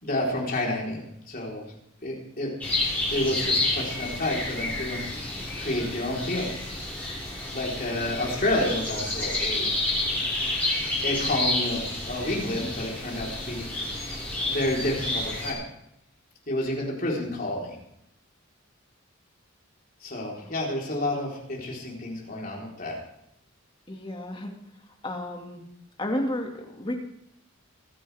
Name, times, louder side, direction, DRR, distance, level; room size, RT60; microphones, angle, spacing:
voice 1, 0.0-1.6 2.0-2.5 3.1-5.0 5.6-6.5 7.5-9.7 11.0-13.7 14.5-15.6 16.5-17.8 20.0-23.0, left 1 dB, 40° left, -3 dB, 4.0 m, -29 dB
sound 1, 2.6-15.5, left 2 dB, 5° left, 6.2 m, -30 dB
voice 2, 23.9-24.5 25.0-25.6 26.0-26.9, left 1 dB, 25° left, 1 dB, 2.0 m, -31 dB
25.5 x 10.5 x 3.5 m, 0.78 s
head